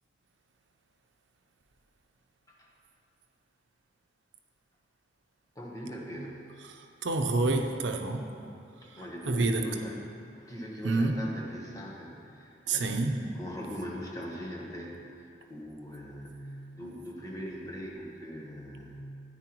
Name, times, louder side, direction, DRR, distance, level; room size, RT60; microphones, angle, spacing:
voice 1, 5.5-6.5 8.8-19.0, equal, 20° left, -2 dB, 1.1 m, -41 dB
voice 2, 6.7-8.2 9.3-9.6 10.8-11.1 12.7-13.2, right 3 dB, 90° right, 4 dB, 0.7 m, -28 dB
9.9 x 9.2 x 3.0 m, 2.5 s
head